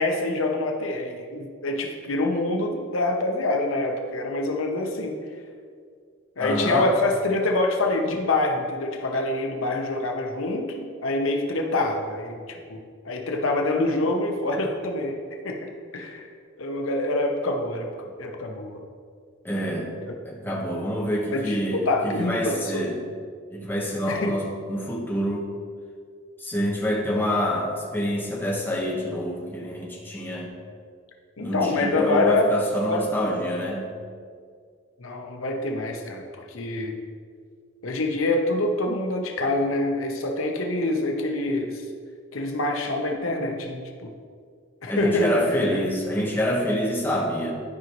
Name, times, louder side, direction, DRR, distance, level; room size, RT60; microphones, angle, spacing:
voice 1, 0.0-5.2 6.4-12.8 13.0-15.2 15.4-16.3 16.6-18.8 20.0-20.1 21.3-22.8 24.1-24.3 31.4-32.5 32.8-33.0 35.0-37.0 37.8-41.8 42.3-44.1 44.8-45.8, left 2 dB, 85° left, 2 dB, 0.9 m, -26 dB
voice 2, 6.4-6.9 19.4-19.9 20.2-23.0 23.5-25.4 26.4-30.5 31.4-33.9 44.9-47.5, equal, 10° left, -4 dB, 1.1 m, -27 dB
12.5 x 5.2 x 3.1 m, 2.1 s
head